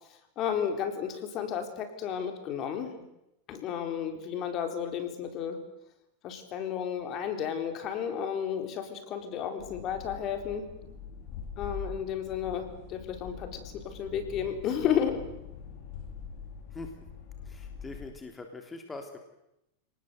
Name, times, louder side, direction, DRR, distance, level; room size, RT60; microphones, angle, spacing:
voice 1, 0.4-3.0 3.5-5.6 6.2-10.6 11.6-15.3, left 8 dB, 40° left, 7 dB, 4.1 m, -32 dB
sound 1, 9.6-18.1, left 6 dB, 55° left, 5.6 m, -44 dB
voice 2, 17.4-19.2, left 3 dB, 15° left, 4 dB, 3.3 m, -42 dB
28.5 x 19.5 x 8.1 m, 0.87 s
supercardioid pair, 125°, 0 cm